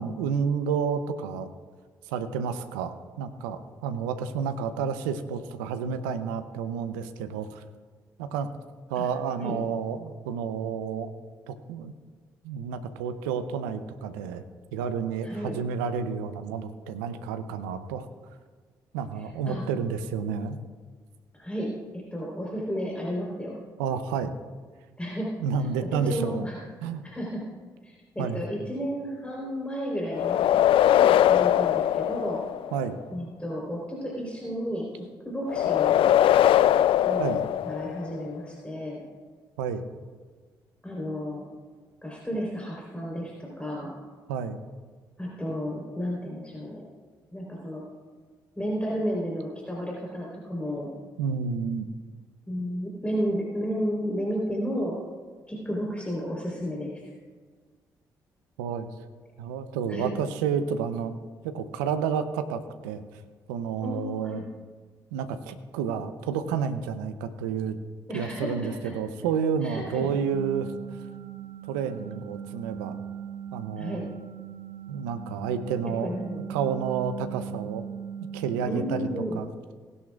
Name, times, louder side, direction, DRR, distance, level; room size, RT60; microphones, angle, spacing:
voice 1, 0.0-1.5 2.0-7.6 8.2-8.5 8.9-11.1 11.5-11.9 12.4-14.4 14.7-18.1 18.9-20.6 23.8-24.3 25.4-26.4 26.8-27.0 28.2-28.4 32.7-33.0 37.2-37.5 39.6-39.8 44.3-44.6 51.2-51.9 58.6-58.9 59.4-61.2 61.4-63.2 63.5-64.4 65.1-67.8 68.1-70.7 71.7-73.0 73.5-74.0 74.9-76.1 76.5-77.9 78.3-79.5, right 6 dB, 85° right, 10 dB, 0.7 m, -30 dB
voice 2, 15.2-15.5 19.5-19.6 21.3-23.6 25.0-25.4 25.9-26.6 27.0-27.5 27.8-30.5 30.9-32.4 33.1-36.1 37.1-37.3 37.6-39.0 40.8-41.5 42.0-44.0 45.2-46.8 47.3-47.8 48.6-50.9 52.5-55.0 55.5-57.0 59.9-60.1 63.8-64.4 68.1-68.9 69.6-70.1 73.8-74.1 75.8-76.5 78.7-79.4, equal, 10° left, -4 dB, 4.0 m, -32 dB
sound 1, 30.1-32.9 35.5-38.2, left 11 dB, 60° left, 0.4 m, -21 dB
sound 2, 70.3-79.2, right 8 dB, 55° right, 0.9 m, -39 dB
18.5 x 11.0 x 2.4 m, 1.5 s
hypercardioid pair, 45°, 10 cm